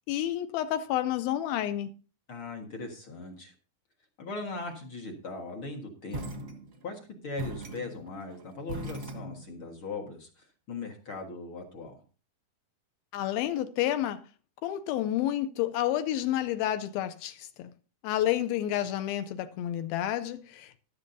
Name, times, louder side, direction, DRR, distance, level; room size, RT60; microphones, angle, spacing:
voice 1, 0.1-1.9 13.1-14.2 14.6-17.7 18.0-20.8, left 12 dB, 80° left, 2.3 m, -30 dB
voice 2, 2.3-3.5 4.2-6.4 6.8-12.0, left 3 dB, 50° left, 1.6 m, -39 dB
sound 1, 6.1-7.0 7.4-9.7, right 1 dB, 55° right, 0.8 m, -39 dB
15.0 x 11.5 x 2.7 m
omnidirectional pair, 4.6 m